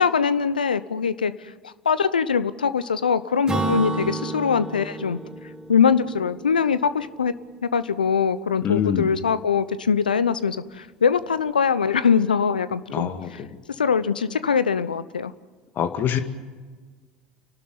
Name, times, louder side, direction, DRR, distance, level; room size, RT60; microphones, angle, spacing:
voice 1, 0.0-1.3 1.6-5.2 5.7-7.3 7.6-13.4 13.8-15.3, left 6 dB, 85° left, 15 dB, 0.9 m, -22 dB
Acoustic guitar / Strum, 3.5-7.1, right 3 dB, 15° right, 4.7 m, -31 dB
voice 2, 8.6-9.1 12.9-13.3 15.8-16.2, left 9 dB, 45° left, 8 dB, 2.1 m, -24 dB
29.5 x 12.5 x 9.6 m, 1.4 s
figure-of-eight pair, 70°, 5 cm